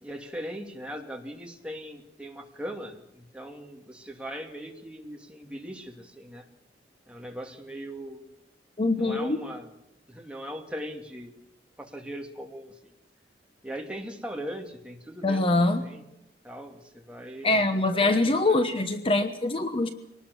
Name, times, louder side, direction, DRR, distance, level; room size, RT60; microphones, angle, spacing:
voice 1, 0.0-6.4 7.1-8.2 9.0-9.7 10.1-11.3 11.8-12.7 13.6-16.0 16.4-18.8, equal, 5° right, 2 dB, 2.6 m, -40 dB
voice 2, 8.8-9.4 15.2-15.8 17.4-19.9, left 2 dB, 30° left, 8 dB, 1.1 m, -24 dB
24.0 x 19.5 x 7.0 m, 0.86 s
head